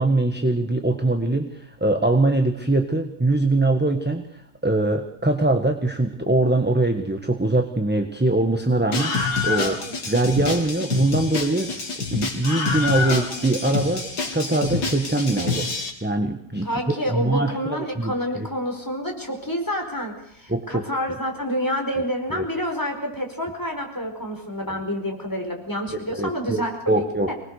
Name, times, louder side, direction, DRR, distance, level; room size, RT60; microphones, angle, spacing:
voice 1, 0.0-11.7 12.1-14.0 14.3-15.7 16.0-16.7 17.1-18.5 20.5-20.8 22.3-22.4 26.1-26.6 26.9-27.3, right 2 dB, 5° right, 5 dB, 1.3 m, -22 dB
Screaming, 8.9-15.9, left 4 dB, 60° left, 3.2 m, -27 dB
voice 2, 16.6-27.3, equal, 10° left, 2 dB, 4.6 m, -28 dB
25.0 x 20.0 x 6.6 m, 0.71 s
omnidirectional pair, 1.9 m